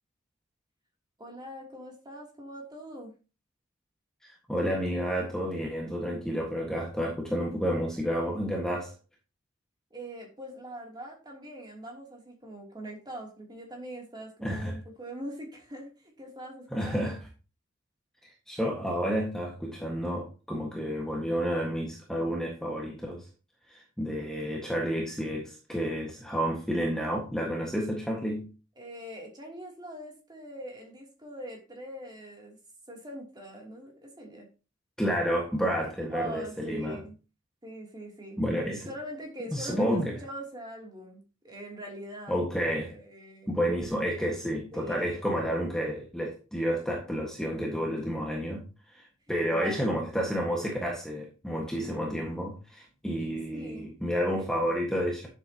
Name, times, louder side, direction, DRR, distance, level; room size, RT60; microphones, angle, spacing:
voice 1, 1.2-3.1 9.9-17.1 28.7-32.6 32.9-34.5 36.1-37.2 37.6-38.4 38.9-42.4 42.8-43.5 44.7-45.1 49.5-49.9 53.2-53.9, right 1 dB, 20° right, 0 dB, 3.0 m, -42 dB
voice 2, 4.2-8.9 14.4-14.7 16.7-17.2 18.5-23.2 23.7-28.5 35.0-37.0 38.4-38.9 39.5-40.1 42.3-42.9 43.5-49.0 49.3-55.3, equal, 5° left, -1 dB, 1.6 m, -30 dB
10.5 x 7.7 x 2.9 m, 0.33 s
head